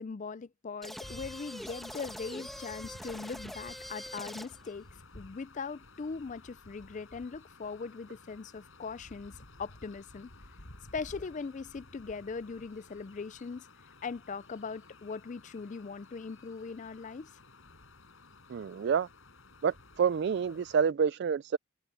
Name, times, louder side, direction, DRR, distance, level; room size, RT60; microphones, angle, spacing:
voice 1, 0.0-4.9 5.1-10.3 10.9-13.7 14.0-17.3, left 4 dB, 35° left, 0.4 m, -40 dB
sound 1, 0.8-4.7, equal, ahead, 1.3 m, -44 dB
sound 2, 1.0-20.9, left 2 dB, 60° left, 5.0 m, -54 dB
voice 2, 18.5-19.1 19.6-21.6, right 6 dB, 50° right, 0.3 m, -28 dB
head